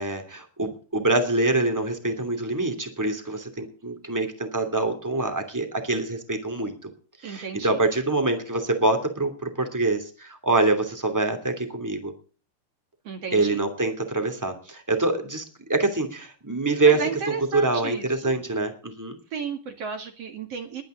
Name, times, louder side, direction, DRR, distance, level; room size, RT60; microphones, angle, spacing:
voice 1, 0.0-6.7 7.2-12.1 13.3-19.2, right 2 dB, 5° right, 5 dB, 1.9 m, -25 dB
voice 2, 7.2-7.8 13.0-13.6 16.9-18.4 19.3-20.8, right 5 dB, 45° right, 6 dB, 2.5 m, -33 dB
21.5 x 9.4 x 3.9 m, 0.38 s
omnidirectional pair, 4.4 m